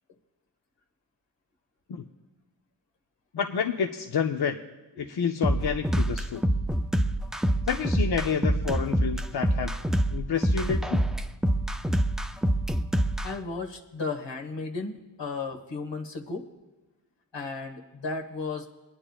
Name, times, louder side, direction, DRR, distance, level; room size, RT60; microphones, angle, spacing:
voice 1, 3.3-4.6 5.0-6.4 7.7-9.7 10.1-11.0, left 6 dB, 65° left, 4 dB, 0.6 m, -29 dB
sound 1, 5.4-13.3, right 1 dB, ahead, 0.4 m, -25 dB
voice 2, 13.2-16.5 17.3-18.7, left 4 dB, 85° left, 5 dB, 1.3 m, -34 dB
28.0 x 9.9 x 2.3 m, 1.2 s
wide cardioid pair, 95°, 42 cm